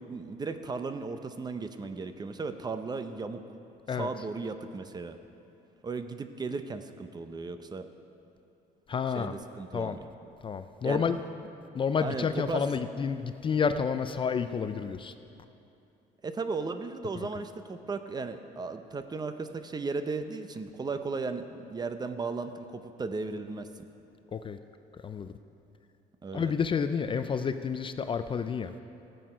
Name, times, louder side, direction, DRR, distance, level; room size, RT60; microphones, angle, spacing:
voice 1, 0.0-3.4 3.9-5.2 5.8-7.9 9.1-10.1 10.8-11.1 12.0-12.6 16.2-23.9 26.2-26.5, right 4 dB, 25° right, 9 dB, 0.6 m, -36 dB
voice 2, 8.9-9.3 9.7-10.0 10.4-11.2 11.7-15.1 24.3-24.6 25.0-25.3 26.3-28.7, left 6 dB, 30° left, 10 dB, 0.4 m, -30 dB
14.0 x 7.8 x 5.1 m, 2.8 s
cardioid pair, 110°, 17 cm